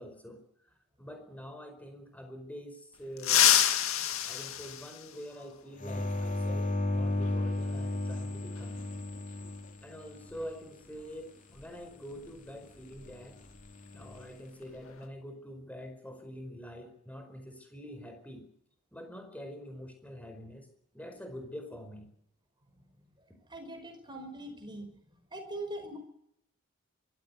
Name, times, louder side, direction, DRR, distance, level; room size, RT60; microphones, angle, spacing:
voice 1, 0.0-3.6 4.2-8.8 9.8-13.4 13.9-18.5 18.9-20.7 20.9-22.1, equal, 5° left, 6 dB, 4.8 m, -45 dB
sound 1, 3.2-5.6 7.2-7.3 8.6-8.7 10.3-10.4 10.8-11.0 11.5-13.7 13.9-14.2 14.6-15.1, left 11 dB, 65° left, 2.1 m, -28 dB
sound 2, 5.8-10.4 13.7-14.2, left 1 dB, 35° left, 3.2 m, -33 dB
voice 2, 23.5-24.9 25.3-26.0, right 1 dB, 20° right, 5 dB, 5.4 m, -41 dB
23.5 x 14.5 x 9.6 m, 0.74 s
head